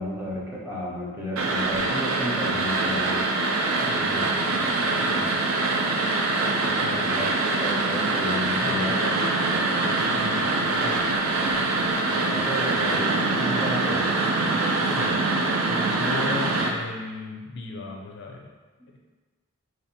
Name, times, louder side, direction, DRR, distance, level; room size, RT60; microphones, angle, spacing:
voice 1, 0.0-3.3 6.9-9.0 12.1-14.1, equal, 10° right, -5 dB, 0.6 m, -32 dB
sound 1, 1.4-16.7, right 3 dB, 70° right, 0.5 m, -24 dB
voice 2, 3.8-5.8 6.6-7.3 8.6-9.3 9.6-11.1 14.8-15.3 15.7-18.5 18.9-19.0, left 3 dB, 55° left, 1 dB, 0.4 m, -37 dB
3.2 x 2.7 x 4.2 m, 1.3 s
head